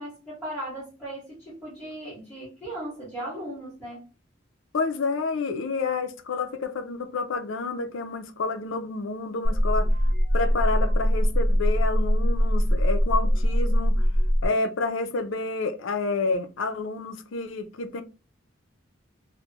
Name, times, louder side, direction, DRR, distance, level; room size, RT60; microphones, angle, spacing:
voice 1, 0.0-4.0, right 1 dB, ahead, 1.7 m, -37 dB
voice 2, 4.7-9.9 10.3-14.1 14.4-18.0, left 3 dB, 75° left, 0.5 m, -29 dB
sound 1, 9.4-14.4, equal, 65° right, 0.8 m, -22 dB
3.3 x 2.2 x 2.9 m
head